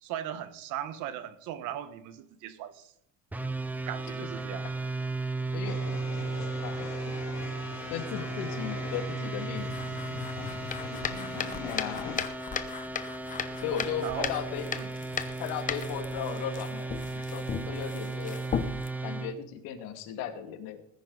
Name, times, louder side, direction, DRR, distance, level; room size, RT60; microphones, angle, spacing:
voice 1, 0.0-2.9 3.9-4.7 11.1-11.7 14.0-14.3 14.8-14.9, right 11 dB, 60° right, 1.5 m, -38 dB
sound 1, 3.3-19.3, right 3 dB, 5° right, 0.7 m, -35 dB
sound 2, 5.6-12.3, left 8 dB, 50° left, 3.4 m, -42 dB
voice 2, 6.6-7.0 7.9-9.8 11.6-12.2 13.6-14.7 15.4-17.0 17.3-18.5 19.0-20.8, left 8 dB, 90° left, 2.5 m, -36 dB
sound 3, 9.6-18.9, left 7 dB, 25° left, 0.9 m, -37 dB
19.5 x 10.5 x 4.1 m
cardioid pair, 180°, 34 cm